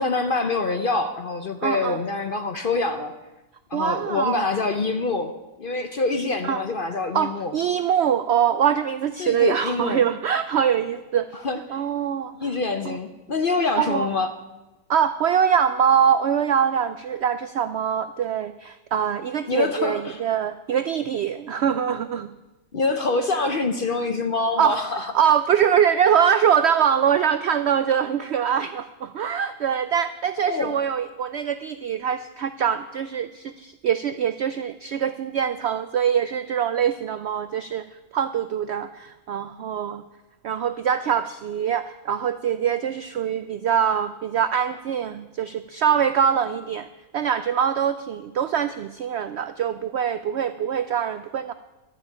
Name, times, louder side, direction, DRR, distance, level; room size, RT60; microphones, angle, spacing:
voice 1, 0.0-3.1 3.7-5.3 5.6-7.5 9.2-10.0 11.3-11.8 12.4-14.3 19.5-20.2 22.7-25.1 30.5-30.7, left 3 dB, 50° left, 8 dB, 0.6 m, -25 dB
voice 2, 1.6-2.0 3.7-4.5 6.4-6.6 7.1-12.3 12.9-13.0 13.8-14.1 14.9-22.3 24.6-37.9 38.1-40.0 40.4-46.9 47.1-51.5, right 8 dB, 90° right, 12 dB, 0.5 m, -23 dB
11.5 x 6.9 x 9.5 m, 1.1 s
omnidirectional pair, 1.7 m